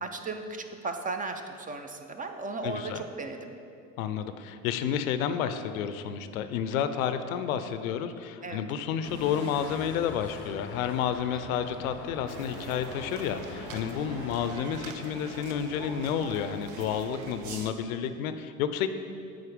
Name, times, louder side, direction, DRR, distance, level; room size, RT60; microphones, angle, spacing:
voice 1, 0.0-3.5 8.4-8.6 11.6-11.7 14.4-14.5, right 3 dB, 20° right, 6 dB, 0.5 m, -36 dB
voice 2, 2.6-3.0 4.0-18.9, left 8 dB, 75° left, 10 dB, 0.6 m, -30 dB
Explosion / Shatter, 9.0-11.8, equal, 80° right, 1.5 m, -45 dB
sound 1, 9.5-14.6, left 6 dB, 30° left, 0.5 m, -44 dB
sound 2, 12.3-17.7, right 4 dB, 65° right, 0.8 m, -42 dB
8.7 x 4.0 x 5.1 m, 2.6 s
hypercardioid pair, 70°, 41 cm